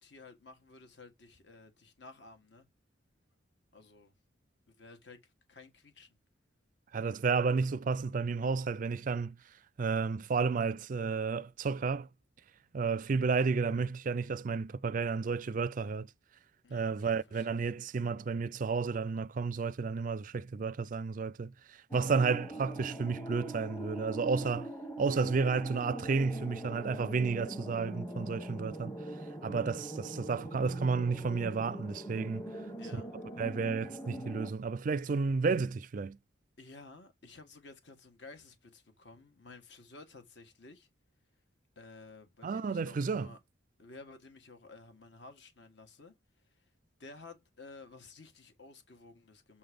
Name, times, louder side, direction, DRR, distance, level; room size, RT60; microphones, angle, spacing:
voice 1, 0.0-2.7 3.7-4.1 4.8-6.1 16.6-17.7 32.8-33.2 36.6-40.9 41.7-43.4 43.8-46.1 46.6-46.7 47.0-49.6, left 3 dB, 60° left, 1.5 m, -53 dB
voice 2, 6.9-9.4 9.8-12.1 12.7-16.1 16.7-21.5 21.9-24.7 25.0-29.0 29.4-32.5 32.9-33.0 33.4-36.2 42.4-43.3, right 4 dB, 45° right, 0.4 m, -32 dB
sound 1, 21.9-34.5, right 1 dB, 20° left, 1.3 m, -42 dB
7.3 x 3.9 x 5.0 m
head